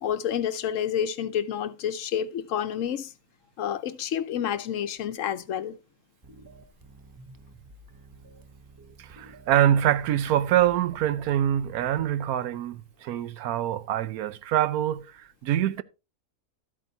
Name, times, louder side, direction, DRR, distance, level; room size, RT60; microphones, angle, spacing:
voice 1, 0.0-3.1 3.6-5.8, left 9 dB, 70° left, 1.0 m, -29 dB
sound 1, 6.2-12.0, right 2 dB, 35° right, 0.3 m, -51 dB
voice 2, 9.0-15.8, right 11 dB, 85° right, 1.1 m, -25 dB
12.5 x 8.6 x 2.7 m
omnidirectional pair, 1.5 m